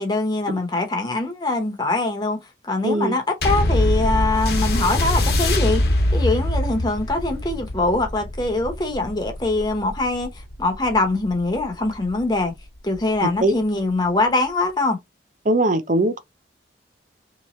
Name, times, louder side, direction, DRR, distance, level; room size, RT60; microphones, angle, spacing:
voice 1, 0.0-2.4 2.6-5.8 6.1-10.3 10.6-12.5 12.8-15.0, left 2 dB, 25° left, 0.9 m, -23 dB
voice 2, 2.8-3.2 13.2-13.5 15.5-16.2, right 1 dB, 45° right, 0.6 m, -20 dB
sound 1, 3.4-12.2 12.9-13.0, left 1 dB, 60° left, 1.1 m, -23 dB
3.4 x 3.0 x 4.2 m
head